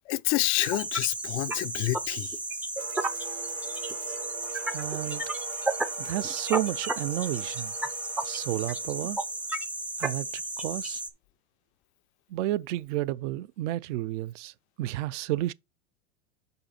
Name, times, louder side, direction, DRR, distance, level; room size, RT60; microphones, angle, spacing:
voice 1, 0.1-2.3, left 19 dB, 60° left, 0.5 m, -28 dB
sound 1, 0.6-11.1, right 2 dB, 5° right, 0.4 m, -33 dB
sound 2, 2.8-9.4 9.7-9.8 10.5-10.6 10.9-11.0, right 11 dB, 85° right, 2.2 m, -44 dB
voice 2, 4.7-5.2 6.0-7.7 8.2-9.2 10.0-11.0 12.3-14.5 14.8-15.5, right 15 dB, 70° right, 0.5 m, -31 dB
5.5 x 5.4 x 4.2 m
supercardioid pair, 125°, 38 cm